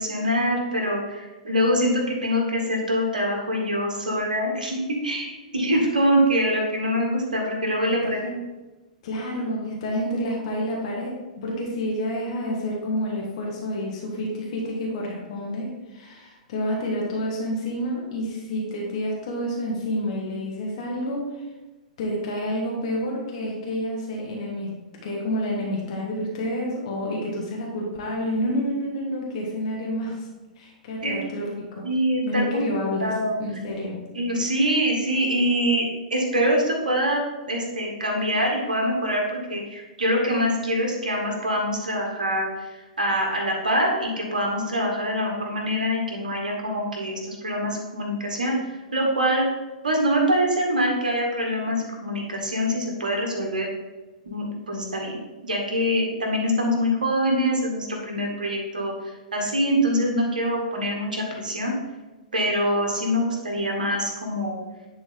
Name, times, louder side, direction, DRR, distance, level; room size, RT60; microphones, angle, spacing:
voice 1, 0.0-8.2 31.0-31.1 31.8-32.6 33.0-33.4 34.2-35.9 36.1-48.6 48.9-49.5 49.8-53.7 54.3-55.2 55.4-58.9 59.3-61.7 62.3-64.6, equal, 70° right, 0 dB, 1.8 m, -24 dB
voice 2, 7.8-8.4 9.0-21.4 22.0-24.7 25.0-30.3 30.6-31.9 32.2-33.1 33.4-34.0, equal, 50° left, -1 dB, 1.5 m, -29 dB
10.0 x 4.0 x 3.8 m, 1.1 s
figure-of-eight pair, 110°, 5 cm